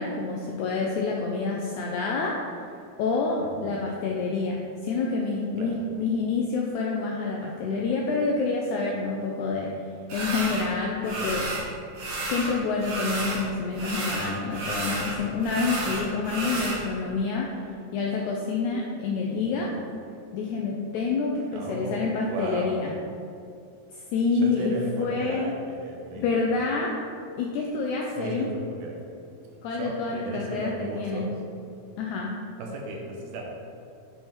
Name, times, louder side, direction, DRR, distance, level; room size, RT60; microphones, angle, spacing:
voice 1, 0.0-2.3 3.0-9.7 10.1-11.5 12.3-17.5 17.9-19.7 20.3-22.9 23.9-24.7 25.0-25.5 26.2-27.0 27.4-28.5 29.6-31.3 32.0-32.3, left 4 dB, 85° left, -1 dB, 1.7 m, -28 dB
voice 2, 3.4-3.7 5.6-5.9 7.8-7.9 11.1-11.5 14.0-14.3 16.4-16.8 19.3-19.6 21.5-22.8 24.3-26.6 28.2-29.0 29.7-31.4 32.6-33.4, right 2 dB, 80° right, 0 dB, 2.1 m, -36 dB
sound 1, 10.1-10.7 11.0-11.7 11.9-13.4 13.7-16.8, right 2 dB, 60° right, 1.9 m, -31 dB
7.9 x 3.4 x 4.3 m, 2.5 s
omnidirectional pair, 3.9 m